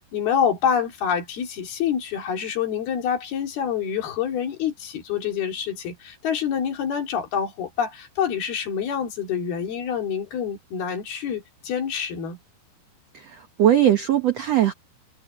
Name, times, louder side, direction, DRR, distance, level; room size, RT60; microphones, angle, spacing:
voice 1, 0.0-12.4, left 8 dB, 65° left, 4.8 m, -27 dB
voice 2, 13.1-14.7, right 11 dB, 75° right, 1.5 m, -20 dB
omnidirectional pair, 4.8 m